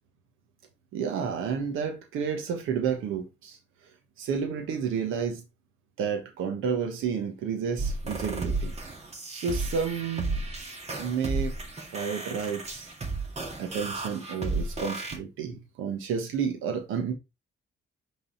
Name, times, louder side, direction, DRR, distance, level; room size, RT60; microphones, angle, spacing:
voice 1, 0.9-3.6 4.2-5.4 6.0-8.7 9.3-10.5 11.0-11.5 11.9-12.9 13.6-17.1, right 6 dB, 90° right, 1.5 m, -31 dB
sound 1, 7.8-15.2, right 3 dB, 35° right, 2.3 m, -33 dB
5.8 x 4.0 x 4.2 m
cardioid pair, 90°, 20 cm